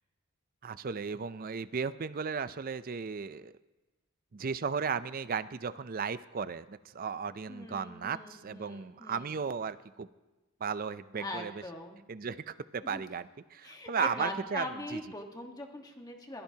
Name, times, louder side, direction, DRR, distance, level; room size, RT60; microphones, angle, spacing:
voice 1, 0.6-3.5 4.3-10.1 10.6-11.6 12.1-15.0, right 6 dB, 40° right, 14 dB, 0.4 m, -35 dB
voice 2, 7.5-9.3 11.2-12.0 12.8-13.0 13.6-16.4, left 1 dB, 15° left, 2 dB, 1.4 m, -41 dB
22.0 x 15.0 x 2.8 m, 1.1 s
head